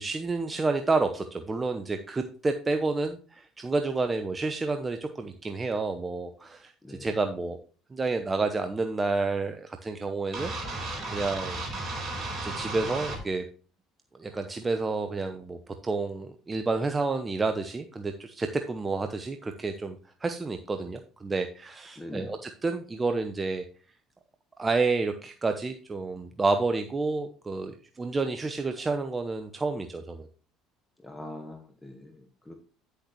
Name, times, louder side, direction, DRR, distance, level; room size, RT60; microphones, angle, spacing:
voice 1, 0.0-7.6 7.9-10.5 11.1-11.6 12.4-13.4 14.2-23.6 24.6-30.3, right 3 dB, 25° right, 7 dB, 0.8 m, -30 dB
sound 1, 10.3-13.2, right 2 dB, 40° right, 4.4 m, -34 dB
voice 2, 22.0-22.3 31.0-32.5, left 1 dB, 10° left, 4 dB, 1.4 m, -42 dB
9.9 x 6.6 x 3.1 m, 0.39 s
hypercardioid pair, 70°, 0 cm